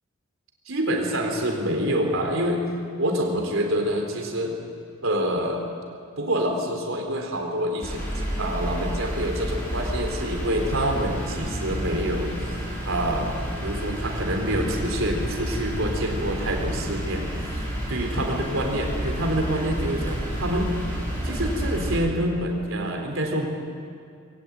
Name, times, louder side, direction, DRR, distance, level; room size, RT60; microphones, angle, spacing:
voice 1, 0.7-2.6 3.0-4.6 5.0-5.6 6.2-20.7 21.2-23.5, right 1 dB, 70° right, 2 dB, 3.9 m, -27 dB
sound 1, 7.8-22.0, equal, 10° left, 7.3 m, -30 dB
21.0 x 18.0 x 9.0 m, 2.3 s
head